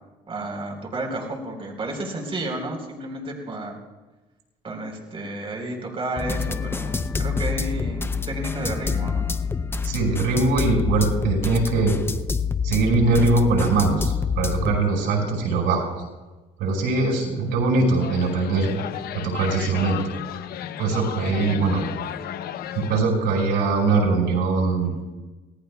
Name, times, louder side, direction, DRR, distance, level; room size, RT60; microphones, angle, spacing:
voice 1, 0.3-3.8 4.6-9.3, right 2 dB, 35° right, 2 dB, 4.2 m, -32 dB
sound 1, 6.2-14.8, left 5 dB, 15° left, 0.6 m, -27 dB
voice 2, 9.8-12.0 12.6-15.9 16.6-18.7 19.1-20.0 20.8-21.8 22.7-25.0, right 3 dB, 80° right, 0 dB, 5.6 m, -21 dB
sound 2, 18.0-23.0, left 10 dB, 65° left, 0.8 m, -33 dB
26.5 x 18.5 x 2.3 m, 1.2 s
cardioid pair, 110°, 17 cm